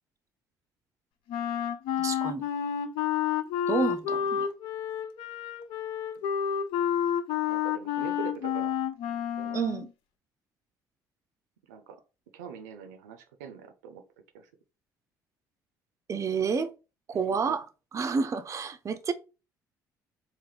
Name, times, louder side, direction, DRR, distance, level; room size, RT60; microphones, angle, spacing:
Wind instrument woodwind instrument, 1.3-9.9, left 9 dB, 60° left, 0.5 m, -30 dB
voice 1, 2.0-2.5 3.7-4.5 9.5-9.9 16.1-16.7 17.1-17.7 17.9-19.1, right 5 dB, 30° right, 0.5 m, -29 dB
voice 2, 7.5-8.8 9.4-9.6 11.7-12.0 12.3-14.0 14.3-14.5 17.4-17.6, right 7 dB, 80° right, 0.6 m, -43 dB
3.3 x 2.5 x 3.9 m
hypercardioid pair, 55°, 10 cm